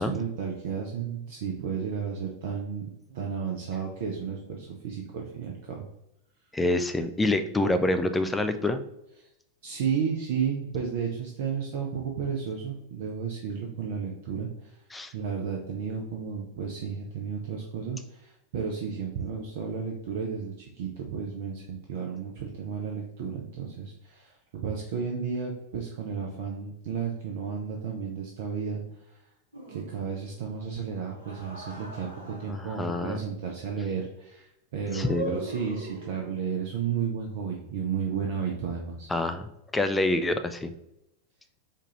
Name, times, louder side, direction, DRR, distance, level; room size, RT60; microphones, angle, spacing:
voice 1, 0.0-5.9 9.2-9.3 9.6-14.8 15.1-29.2 29.7-39.1, right 6 dB, 55° right, 0 dB, 0.5 m, -33 dB
voice 2, 6.5-8.8 14.9-15.1 32.5-33.2 34.9-35.4 39.1-40.7, left 2 dB, 10° left, 9 dB, 0.3 m, -27 dB
sound 1, 29.5-30.4 31.1-32.9 34.9-36.4, right 2 dB, 80° right, 1.0 m, -40 dB
4.6 x 2.4 x 2.9 m, 0.85 s
figure-of-eight pair, 90°, 0 cm